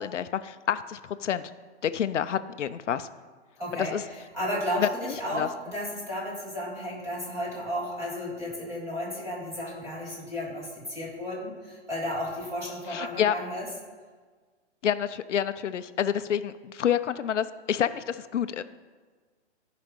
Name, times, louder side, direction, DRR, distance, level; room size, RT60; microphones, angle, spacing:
voice 1, 0.0-1.5 1.8-3.1 3.7-4.0 4.8-5.5 12.9-13.4 14.8-18.6, left 9 dB, 85° left, 12 dB, 0.6 m, -28 dB
voice 2, 3.6-3.9 4.3-13.7, equal, 10° right, -5 dB, 1.9 m, -33 dB
13.0 x 5.1 x 5.2 m, 1.5 s
hypercardioid pair, 160°, 35 cm